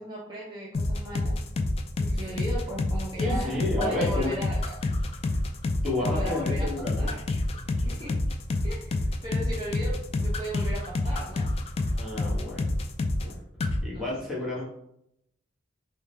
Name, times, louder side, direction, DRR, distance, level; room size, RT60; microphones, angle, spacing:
voice 1, 0.0-1.4 2.0-4.8 6.0-7.2 7.9-8.2 8.6-11.5 13.9-14.1, equal, 25° right, -6 dB, 0.6 m, -37 dB
sound 1, 0.7-13.3 13.6-13.8, left 2 dB, 30° left, 0.3 m, -27 dB
voice 2, 3.2-4.3 5.8-7.1 7.7-8.0 11.9-12.7 13.2-13.4 13.8-14.6, left 1 dB, ahead, -7 dB, 1.2 m, -31 dB
3.5 x 2.2 x 3.2 m, 0.75 s
head